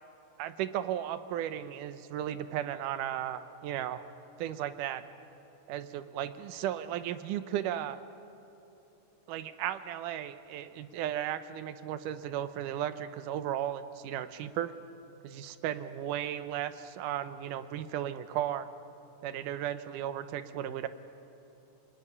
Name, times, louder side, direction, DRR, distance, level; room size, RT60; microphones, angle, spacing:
voice 1, 0.4-4.0 4.4-5.0 5.7-8.0 9.3-14.7 15.2-18.7 19.2-20.9, right 11 dB, 85° right, 12 dB, 2.4 m, -35 dB
26.5 x 20.5 x 9.9 m, 2.9 s
omnidirectional pair, 3.6 m